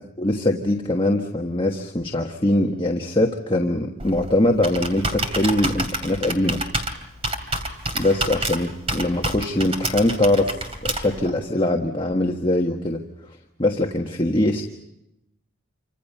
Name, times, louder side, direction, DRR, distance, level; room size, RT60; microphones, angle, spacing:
voice 1, 0.2-6.6 7.9-13.0 13.6-14.7, left 1 dB, 25° left, 2 dB, 1.5 m, -22 dB
Computer keyboard, 4.0-11.3, right 2 dB, 30° right, 2.8 m, -29 dB
28.5 x 25.5 x 5.6 m, 0.86 s
head